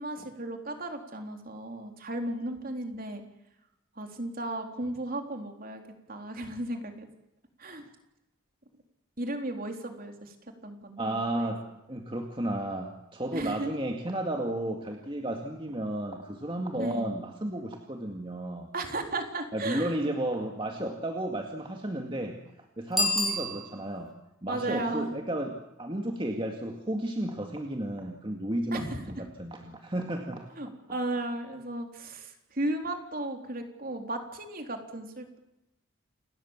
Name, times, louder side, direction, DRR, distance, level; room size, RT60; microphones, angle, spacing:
voice 1, 0.0-3.2 4.0-5.8 6.1-7.1 7.6-7.9 9.2-10.3 10.6-11.5 13.3-13.7 16.8-17.1 18.7-20.1 24.5-25.1 28.7-29.1 30.6-35.4, right 2 dB, 45° right, 4 dB, 3.8 m, -35 dB
voice 2, 11.0-11.6 11.9-18.7 19.5-22.4 22.8-24.1 24.4-30.5, right 1 dB, 25° right, 3 dB, 2.1 m, -33 dB
Bicycle bell, 22.9-24.1, left 1 dB, ahead, 6.3 m, -29 dB
29.0 x 20.5 x 7.4 m, 0.90 s
head